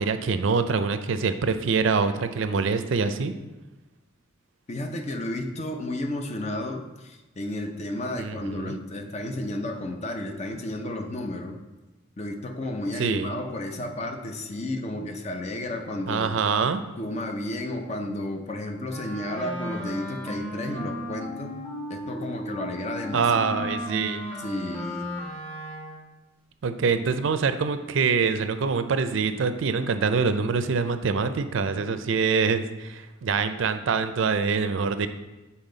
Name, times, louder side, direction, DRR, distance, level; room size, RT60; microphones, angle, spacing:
voice 1, 0.0-3.3 8.2-8.8 13.0-13.3 16.1-16.8 23.1-24.2 26.6-35.1, right 5 dB, 70° right, 10 dB, 0.4 m, -25 dB
voice 2, 4.7-11.6 12.2-16.4 17.0-21.6 21.9-23.7 24.4-25.1, left 1 dB, 35° left, 4 dB, 0.6 m, -32 dB
Wind instrument woodwind instrument, 18.9-26.1, left 1 dB, 5° left, 1.1 m, -35 dB
7.3 x 4.2 x 3.9 m, 1.1 s
head